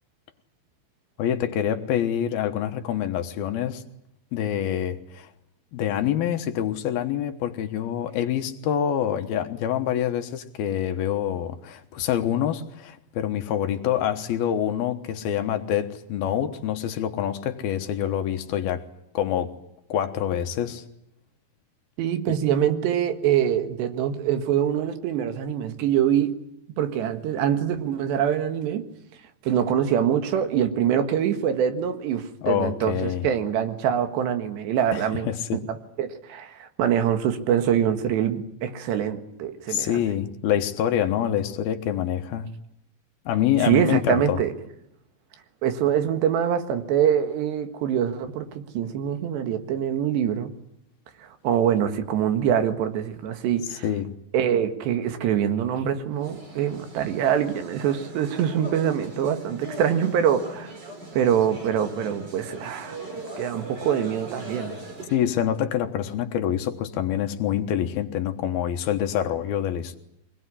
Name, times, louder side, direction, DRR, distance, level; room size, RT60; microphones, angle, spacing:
voice 1, 1.2-3.8 4.3-5.3 5.7-18.9 19.1-19.5 19.9-20.8 22.3-22.4 32.4-33.3 34.9-35.7 39.7-42.5 43.3-44.4 53.8-54.1 65.1-70.0, left 10 dB, 70° left, 7 dB, 3.0 m, -26 dB
voice 2, 22.0-26.4 26.8-28.9 29.4-40.0 43.6-44.5 45.6-50.5 51.2-53.9 54.3-60.7 61.1-63.0 63.4-64.7, right 9 dB, 85° right, 9 dB, 3.9 m, -24 dB
sound 1, 56.1-65.3, right 1 dB, 25° right, 3.4 m, -40 dB
24.0 x 20.0 x 9.9 m, 0.79 s
omnidirectional pair, 4.8 m